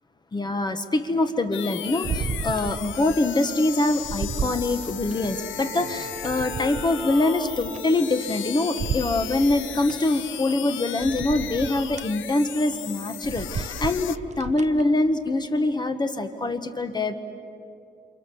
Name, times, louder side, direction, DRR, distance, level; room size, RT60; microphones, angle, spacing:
voice 1, 0.3-17.1, left 2 dB, 20° left, 8 dB, 1.2 m, -24 dB
sound 1, 1.5-14.2, left 11 dB, 75° left, 0.6 m, -36 dB
sound 2, 2.0-3.2 3.6-5.3 5.8-8.4 8.8-10.0 10.5-10.6 11.0-12.1 12.6-12.8 13.1-14.8 15.3-15.4, right 6 dB, 35° right, 0.7 m, -33 dB
Wind instrument woodwind instrument, 4.3-8.7, equal, 55° left, 8.0 m, -41 dB
29.5 x 27.0 x 6.9 m, 2.6 s
wide cardioid pair, 170°, 20 cm